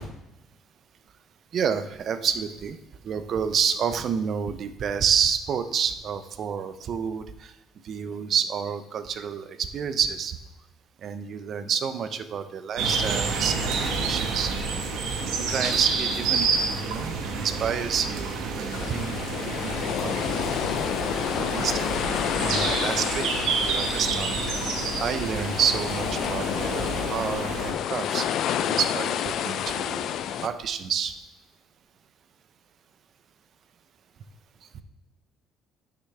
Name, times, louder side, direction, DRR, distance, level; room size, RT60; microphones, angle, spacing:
voice 1, 1.5-2.8 3.0-7.5 7.8-10.3 11.0-14.5 15.4-19.2 19.6-20.5 21.4-21.9 22.4-23.3 23.6-24.5 25.0-28.3 28.6-30.1 30.4-31.1 34.7-34.8, right 7 dB, 40° right, 10 dB, 0.5 m, -29 dB
sound 1, 12.8-27.7, right 4 dB, 75° right, 1.3 m, -29 dB
sound 2, 18.7-30.5, left 9 dB, 50° left, 0.3 m, -29 dB
9.8 x 5.9 x 3.3 m, 0.96 s
cardioid pair, 165°, 0 cm